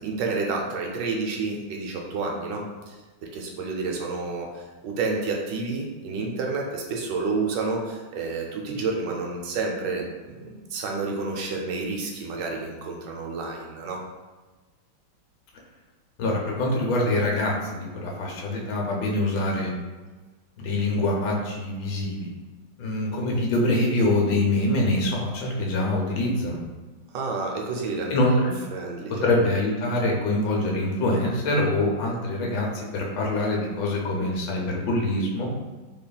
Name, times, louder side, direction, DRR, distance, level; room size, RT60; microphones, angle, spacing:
voice 1, 0.0-3.0 3.2-14.0 27.1-28.1 28.7-29.3, right 3 dB, 75° right, 0 dB, 1.2 m, -30 dB
voice 2, 16.2-19.7 20.6-22.3 22.8-26.6 28.1-28.5 29.2-35.5, left 1 dB, 90° left, -1 dB, 1.5 m, -24 dB
4.1 x 3.4 x 2.2 m, 1.3 s
omnidirectional pair, 2.0 m